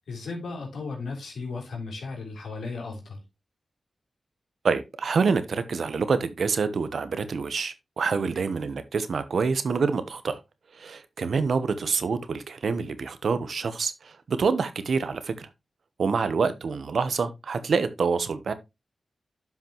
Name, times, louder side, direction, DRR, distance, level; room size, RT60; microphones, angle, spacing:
voice 1, 0.1-3.2 8.4-8.5, left 4 dB, 90° left, 3.4 m, -35 dB
voice 2, 4.6-10.4 10.7-15.5 16.0-18.5, right 5 dB, 75° right, 1.0 m, -26 dB
10.5 x 5.7 x 3.0 m
cardioid pair, 50°, 0 cm